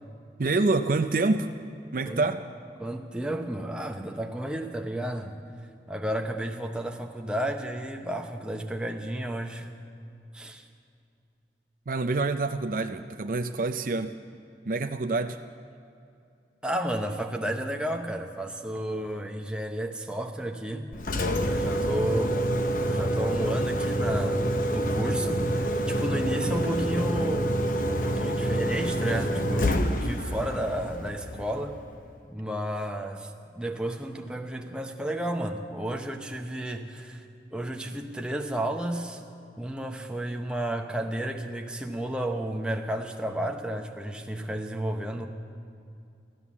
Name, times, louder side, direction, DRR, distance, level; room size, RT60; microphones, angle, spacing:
voice 1, 0.4-1.5 1.9-2.5 11.9-14.1 14.7-15.4, right 3 dB, 50° right, 7 dB, 0.5 m, -26 dB
voice 2, 2.8-5.4 5.9-9.7 10.3-10.6 16.6-20.9 21.5-22.6 22.8-27.5 27.9-31.8 32.3-37.2 37.5-39.2 39.6-45.3, right 1 dB, 5° right, 3 dB, 0.9 m, -32 dB
Engine, 20.9-31.9, equal, 50° left, 0.9 m, -27 dB
15.5 x 12.5 x 7.2 m, 2.5 s
head